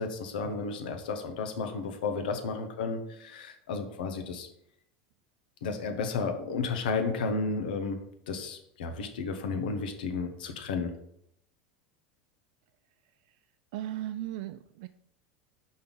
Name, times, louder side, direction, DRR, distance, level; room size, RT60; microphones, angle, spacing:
voice 1, 0.0-4.5 5.6-11.0, left 4 dB, 80° left, 6 dB, 1.0 m, -33 dB
voice 2, 13.7-14.9, right 13 dB, 70° right, 10 dB, 0.3 m, -36 dB
5.5 x 4.4 x 5.3 m, 0.74 s
hypercardioid pair, 105°, 5 cm